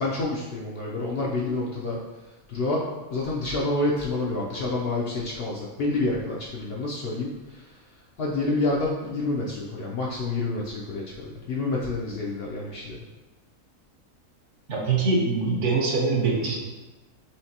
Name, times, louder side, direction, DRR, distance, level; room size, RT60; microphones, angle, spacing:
voice 1, 0.0-2.0 2.5-2.8 3.1-7.7 8.2-13.0, left 2 dB, 65° left, -3 dB, 0.6 m, -28 dB
voice 2, 14.7-16.5, right 4 dB, 65° right, -2 dB, 1.1 m, -23 dB
4.4 x 3.2 x 2.8 m, 1.2 s
omnidirectional pair, 1.4 m